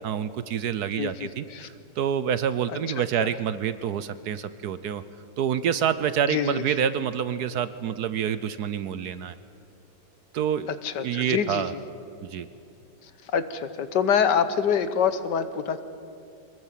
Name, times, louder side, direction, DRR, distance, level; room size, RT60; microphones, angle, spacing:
voice 1, 0.0-5.0 5.4-9.3 10.3-10.7 11.0-11.7 12.2-12.5, right 8 dB, 65° right, 14 dB, 1.1 m, -27 dB
voice 2, 0.9-1.7 3.2-3.3 6.3-6.6 10.8-11.6 13.3-15.8, left 7 dB, 65° left, 11 dB, 1.5 m, -25 dB
23.5 x 21.0 x 7.5 m, 2.5 s
omnidirectional pair, 2.1 m